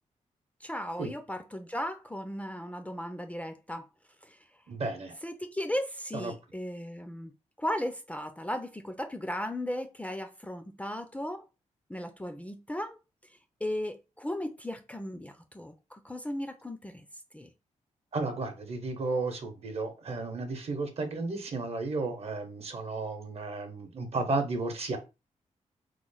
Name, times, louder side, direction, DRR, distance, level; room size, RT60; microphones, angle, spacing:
voice 1, 0.6-3.8 5.2-7.3 7.6-11.4 11.9-13.0 13.6-17.0 17.3-17.5, left 1 dB, 10° left, 0.4 m, -36 dB
voice 2, 4.7-5.1 6.1-6.3 18.1-25.0, right 3 dB, 55° right, 0.8 m, -33 dB
3.0 x 2.0 x 3.9 m
wide cardioid pair, 105°, 13 cm